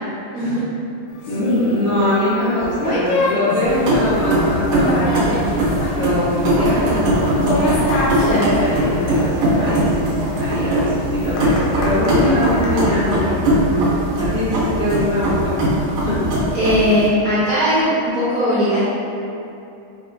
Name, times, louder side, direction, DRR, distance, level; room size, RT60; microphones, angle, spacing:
sound 1, 1.2-12.9, left 1 dB, 85° left, 1.5 m, -26 dB
voice 1, 1.3-5.5 5.9-7.8 8.6-9.9 10.4-13.8 14.2-15.5 16.0-16.2, left 1 dB, 60° left, -11 dB, 1.0 m, -22 dB
sound 2, 3.6-17.1, right 1 dB, 90° right, 1.9 m, -20 dB
voice 2, 8.2-8.5 16.5-18.8, equal, 55° right, -10 dB, 1.1 m, -18 dB
5.1 x 2.9 x 2.7 m, 2.7 s
omnidirectional pair, 2.3 m